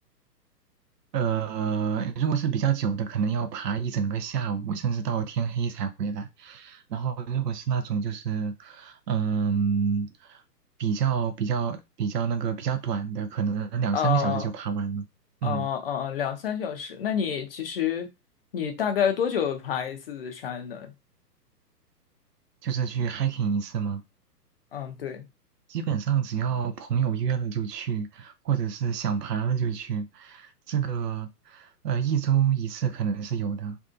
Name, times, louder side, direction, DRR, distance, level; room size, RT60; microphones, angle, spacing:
voice 1, 1.1-10.4 10.8-15.1 15.4-15.7 22.6-24.0 25.7-33.8, right 7 dB, 75° right, 0.5 m, -28 dB
voice 2, 13.9-14.5 15.4-18.1 18.5-20.9 24.7-25.3, left 8 dB, 40° left, 0.5 m, -28 dB
2.6 x 2.4 x 2.4 m
figure-of-eight pair, 120°, 49 cm